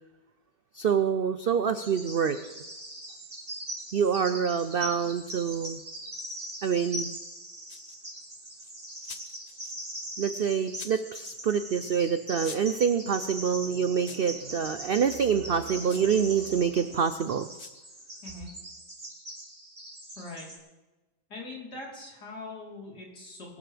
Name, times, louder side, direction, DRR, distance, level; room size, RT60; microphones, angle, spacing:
voice 1, 0.7-2.4 3.9-5.8 6.6-7.2 10.2-17.5, right 7 dB, 85° right, 10 dB, 0.5 m, -26 dB
Bird vocalization bird call bird song, 1.8-20.6, right 1 dB, 35° right, 4.2 m, -41 dB
sound 1, 7.7-8.1 8.6-9.7 10.4-11.1 12.0-12.1 12.4-12.8 14.0-14.4 15.8-16.1 17.5-17.8, left 5 dB, 45° left, 0.5 m, -46 dB
voice 2, 20.2-20.5 21.3-23.6, left 2 dB, 80° left, -4 dB, 4.5 m, -42 dB
21.5 x 12.5 x 3.4 m, 1.1 s
omnidirectional pair, 1.7 m